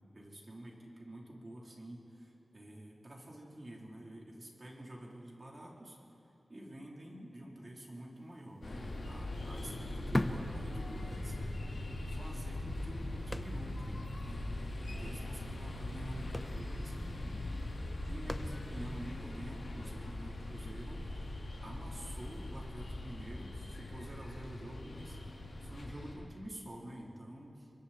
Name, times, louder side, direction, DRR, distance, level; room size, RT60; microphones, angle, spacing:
voice 1, 0.1-6.0 6.5-11.9 12.2-17.5 18.0-27.7, right 1 dB, 35° right, -2 dB, 3.7 m, -49 dB
sound 1, 8.4-8.5 8.8-11.4 11.7-11.8 12.4-14.0 14.2-14.3 14.6-14.8 15.7-15.8 16.1-19.0 19.5-19.6, left 1 dB, 20° left, 0.9 m, -40 dB
sound 2, 8.6-26.1, left 1 dB, 75° left, 4.0 m, -41 dB
29.5 x 24.0 x 4.4 m, 2.8 s
wide cardioid pair, 110°, 0 cm